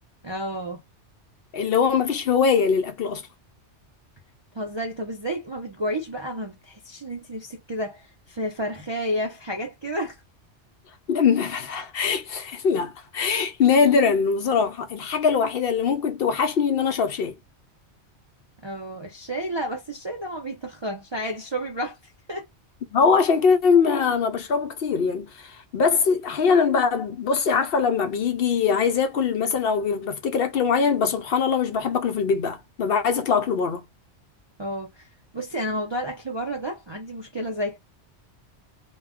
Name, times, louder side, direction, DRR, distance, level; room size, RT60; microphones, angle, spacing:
voice 1, 0.2-0.8 4.5-10.2 18.6-22.4 34.6-35.1 35.3-37.8, equal, 40° right, 0.4 m, -31 dB
voice 2, 1.5-3.2 11.1-17.4 22.9-33.8, left 6 dB, 65° left, 0.7 m, -22 dB
2.2 x 2.2 x 3.5 m
omnidirectional pair, 1.2 m